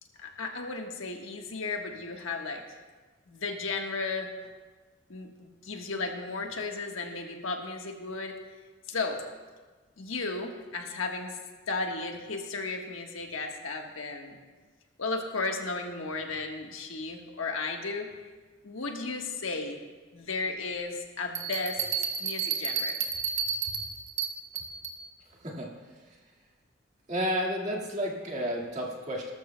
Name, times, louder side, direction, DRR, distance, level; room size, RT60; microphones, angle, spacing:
voice 1, 0.2-2.6 3.3-4.3 5.1-8.3 8.9-9.2 10.0-11.4 11.7-14.4 15.0-18.3 18.6-19.8 20.1-21.8 22.2-23.0, left 3 dB, 85° left, 2 dB, 1.3 m, -34 dB
sound 1, 21.3-25.0, right 7 dB, 70° right, 1.2 m, -32 dB
voice 2, 25.4-25.7 26.1-26.2 27.1-29.3, equal, 35° right, -1 dB, 1.9 m, -31 dB
18.5 x 13.0 x 2.2 m, 1.3 s
head